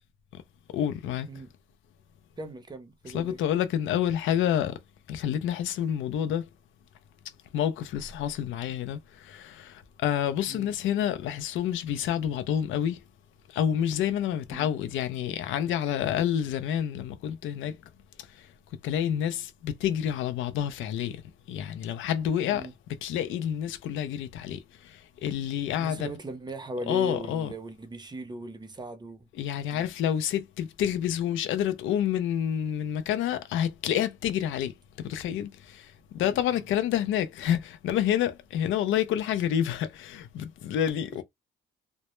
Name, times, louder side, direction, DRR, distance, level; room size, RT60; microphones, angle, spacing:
voice 1, 0.7-1.3 3.1-4.7 5.1-6.4 7.5-13.0 13.5-17.8 18.4-18.5 18.8-21.2 21.5-22.7 23.0-26.1 26.9-27.5 29.4-41.2, left 10 dB, 80° left, 0.4 m, -28 dB
voice 2, 2.4-3.4 10.5-10.7 14.5-14.7 22.5-22.7 25.8-29.3 29.7-29.9 36.2-36.7, right 1 dB, 20° right, 0.6 m, -39 dB
2.1 x 2.0 x 3.0 m
cardioid pair, 90°, 20 cm